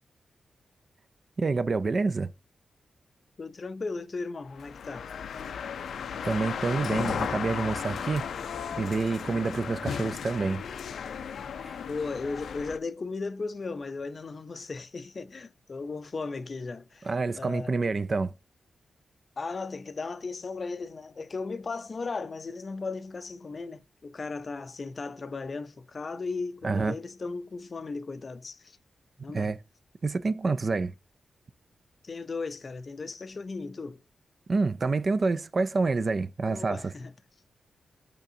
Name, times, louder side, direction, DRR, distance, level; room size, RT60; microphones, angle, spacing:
voice 1, 1.4-2.3 6.2-8.3 8.7-10.6 11.6-11.8 17.1-18.3 26.6-26.9 29.3-29.6 30.0-30.9 34.5-36.8, right 4 dB, 35° right, 0.4 m, -27 dB
voice 2, 3.4-5.1 11.8-17.9 19.4-28.8 29.2-29.5 32.0-34.0 36.4-37.1, left 4 dB, 35° left, 0.5 m, -36 dB
sound 1, 4.6-12.8, left 7 dB, 85° left, 0.5 m, -35 dB
9.0 x 5.9 x 2.7 m
wide cardioid pair, 165°, 0 cm